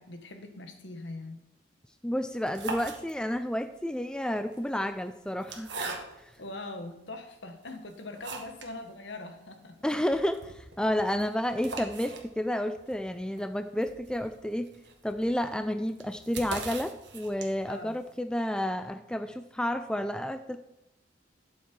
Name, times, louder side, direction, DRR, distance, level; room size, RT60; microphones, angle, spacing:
voice 1, 0.0-1.4 6.4-9.8 17.7-18.0, left 2 dB, 65° left, 6 dB, 1.5 m, -42 dB
voice 2, 2.0-5.8 9.8-14.7 15.0-20.6, equal, 5° left, 9 dB, 0.4 m, -31 dB
sound 1, 2.3-3.5 4.4-6.4 7.1-7.2 7.6-8.8 9.1-9.2 9.5-9.6 9.9-17.8, right 3 dB, 60° right, 1.6 m, -42 dB
12.0 x 7.3 x 4.6 m, 0.91 s
head